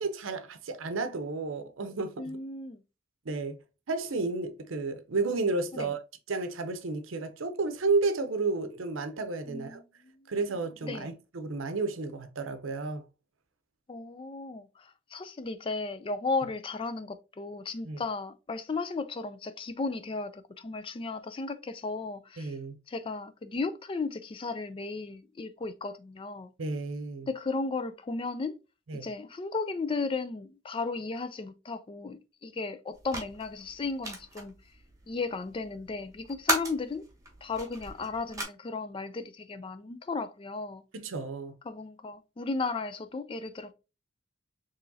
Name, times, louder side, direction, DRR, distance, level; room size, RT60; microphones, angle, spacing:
voice 1, 0.0-2.4 3.3-3.6 3.9-6.0 6.3-9.8 10.3-13.1 17.8-18.0 22.4-22.8 26.6-27.3 28.9-29.1 40.9-41.5, right 3 dB, 85° right, 0.7 m, -32 dB
voice 2, 2.2-2.8 5.7-5.9 9.5-10.2 10.8-11.1 13.9-22.5 22.9-26.5 27.3-28.5 29.0-34.5 35.1-37.0 37.4-40.8 41.6-43.7, left 3 dB, 25° left, 0.3 m, -35 dB
sound 1, 32.9-38.4, right 1 dB, 15° right, 1.2 m, -37 dB
4.6 x 3.1 x 2.7 m
head